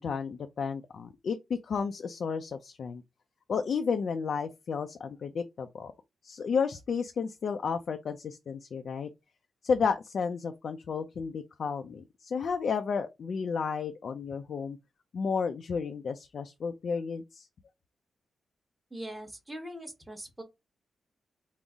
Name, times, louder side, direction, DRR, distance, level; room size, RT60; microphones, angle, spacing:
voice 1, 0.0-3.0 3.5-5.9 6.2-9.1 9.6-14.8 15.1-17.5, left 5 dB, 65° left, 0.4 m, -32 dB
voice 2, 18.9-20.4, right 1 dB, 10° right, 1.0 m, -41 dB
3.8 x 2.0 x 3.5 m
cardioid pair, 75°, 0 cm